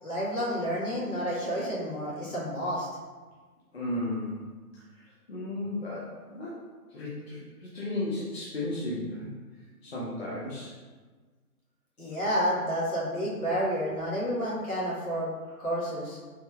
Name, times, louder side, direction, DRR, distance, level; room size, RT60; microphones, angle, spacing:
voice 1, 0.0-2.9 12.0-15.3 15.6-16.2, equal, 65° left, -7 dB, 1.4 m, -30 dB
voice 2, 3.7-4.4 4.7-6.6 6.9-9.3 9.8-10.7, left 1 dB, 45° left, -7 dB, 0.6 m, -34 dB
3.3 x 2.7 x 2.3 m, 1.4 s
figure-of-eight pair, 140°, 46 cm